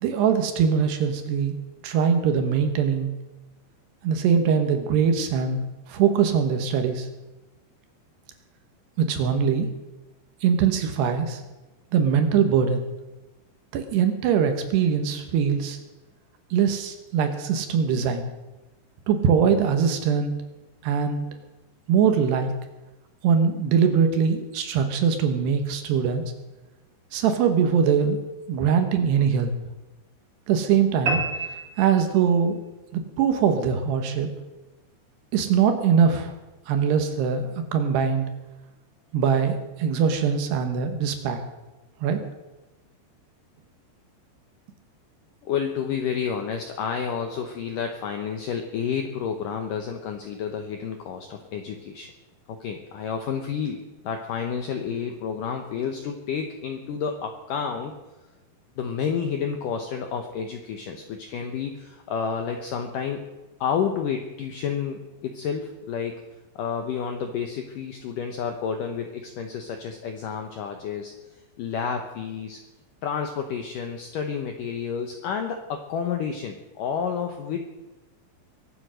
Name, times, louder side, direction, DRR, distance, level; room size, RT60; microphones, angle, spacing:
voice 1, 0.0-1.5 1.8-3.1 4.0-5.6 5.9-7.1 9.0-9.7 10.4-11.4 11.9-12.8 13.7-15.8 16.5-18.3 19.1-20.3 20.8-21.3 21.9-22.5 23.2-26.2 27.1-28.2 28.5-29.5 30.5-31.2 31.8-32.6 32.9-34.3 35.3-36.3 36.7-38.3 39.1-41.4 42.0-42.2, right 7 dB, 70° right, 6 dB, 3.1 m, -22 dB
sound 1, 31.1-32.6, right 2 dB, 50° right, 1.8 m, -29 dB
voice 2, 45.4-52.1 52.5-58.0 58.8-63.3 63.6-66.2 66.6-71.1 71.6-72.6 73.0-77.6, left 7 dB, 85° left, 5 dB, 1.9 m, -30 dB
23.0 x 7.9 x 6.4 m, 1.1 s
omnidirectional pair, 5.3 m